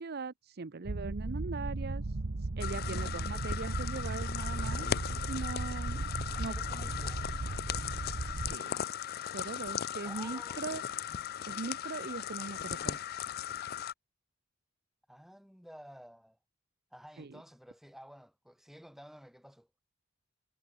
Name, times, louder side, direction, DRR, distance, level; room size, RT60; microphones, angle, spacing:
voice 1, 0.0-2.0 2.6-4.9 5.3-6.1 6.4-6.5 8.3-8.7 9.2-10.8 11.5-13.0 17.2-17.3, right 4 dB, 55° right, 0.7 m, -40 dB
sound 1, 0.9-8.6, right 2 dB, 90° right, 1.0 m, -36 dB
sound 2, 2.6-13.9, left 9 dB, 50° left, 0.4 m, -38 dB
voice 2, 6.2-8.2 10.0-10.6 15.1-16.4 16.9-19.7, equal, ahead, 6.7 m, -53 dB
head